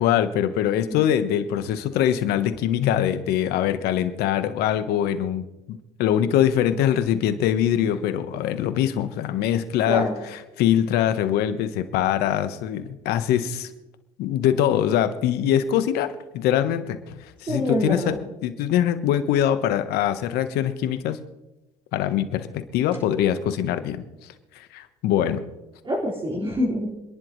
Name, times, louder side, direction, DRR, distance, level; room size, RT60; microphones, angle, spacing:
voice 1, 0.0-10.1 10.6-13.7 14.2-18.1 18.4-21.2 21.9-24.0 24.5-25.4, left 10 dB, 70° left, 11 dB, 1.3 m, -23 dB
voice 2, 9.8-10.2 17.5-18.2 25.8-26.9, equal, 30° right, -8 dB, 5.1 m, -26 dB
27.5 x 10.5 x 3.3 m, 1.0 s
hypercardioid pair, 75°, 17 cm